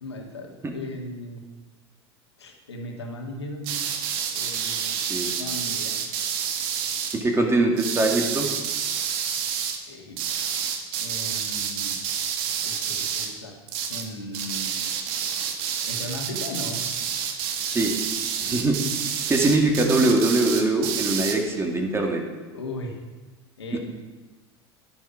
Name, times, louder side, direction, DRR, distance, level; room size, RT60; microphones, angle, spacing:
voice 1, 0.0-1.4 2.4-3.9 4.3-5.0 5.4-5.9 9.9-10.5 11.0-12.0 12.6-13.6 13.9-14.7 15.9-16.8 18.4-18.6 22.5-23.0 23.6-23.8, left 1 dB, 85° left, 2 dB, 1.8 m, -37 dB
sound 1, 3.6-7.2 7.8-9.8 10.2-13.4 13.7-14.1 14.3-21.4, right 8 dB, 60° right, 1.4 m, -29 dB
voice 2, 7.1-8.5 17.7-17.9 18.4-18.8 19.3-22.2 23.7-23.8, right 2 dB, 20° right, 2 dB, 2.2 m, -22 dB
10.5 x 10.0 x 5.0 m, 1.3 s
hypercardioid pair, 80°, 14 cm